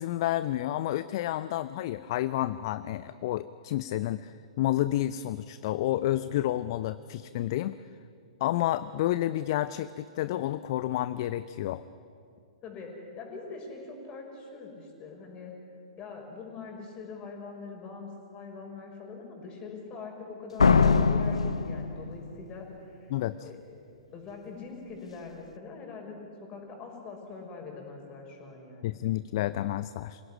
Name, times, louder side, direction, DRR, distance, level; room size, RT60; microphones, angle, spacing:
voice 1, 0.0-7.8 8.4-11.8 23.1-23.5 28.8-30.2, left 14 dB, 50° left, 15 dB, 0.6 m, -30 dB
voice 2, 12.6-15.5 16.0-23.1 23.4-29.0, left 4 dB, 30° left, 2 dB, 5.8 m, -43 dB
Slam, 20.6-22.5, left 5 dB, 75° left, 0.9 m, -22 dB
26.5 x 17.5 x 10.0 m, 2.5 s
figure-of-eight pair, 110°, 3 cm